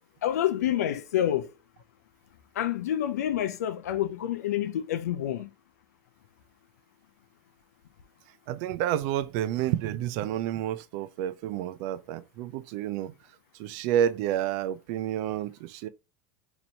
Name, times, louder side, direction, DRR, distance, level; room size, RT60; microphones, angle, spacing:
voice 1, 0.2-1.5 2.6-5.5, left 11 dB, 85° left, 0.5 m, -28 dB
voice 2, 8.5-13.2 13.5-15.9, right 11 dB, 55° right, 0.4 m, -29 dB
3.0 x 2.6 x 4.2 m
supercardioid pair, 120°, 8 cm